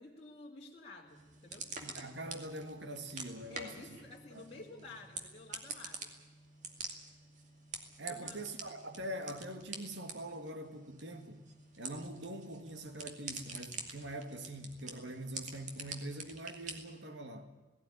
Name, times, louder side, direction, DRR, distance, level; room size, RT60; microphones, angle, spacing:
voice 1, 0.0-1.7 3.5-6.1 8.1-8.4, left 2 dB, 30° left, 2.3 m, -52 dB
sound 1, 1.1-17.0, right 4 dB, 40° right, 2.4 m, -47 dB
voice 2, 1.8-4.0 4.3-4.6 8.0-11.4 11.8-17.5, right 1 dB, 80° right, 1.9 m, -44 dB
sound 2, 3.2-6.4, left 1 dB, 60° right, 4.8 m, -66 dB
17.5 x 17.5 x 9.8 m
head